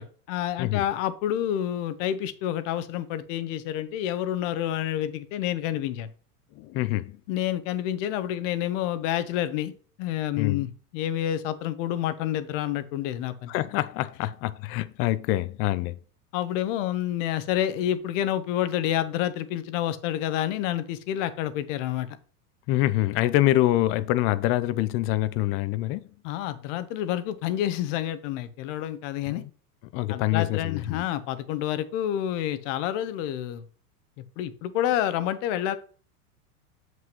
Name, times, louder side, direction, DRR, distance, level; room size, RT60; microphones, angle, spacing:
voice 1, 0.0-6.1 7.3-9.7 10.0-13.5 16.3-22.1 26.2-29.4 30.1-33.6 34.4-35.8, left 11 dB, 55° left, 1.0 m, -28 dB
voice 2, 6.6-7.1 10.4-10.7 13.5-16.0 22.7-26.0 29.3-29.5 29.9-31.0, left 16 dB, 30° left, 0.4 m, -25 dB
7.3 x 6.2 x 3.0 m
hypercardioid pair, 110°, 46 cm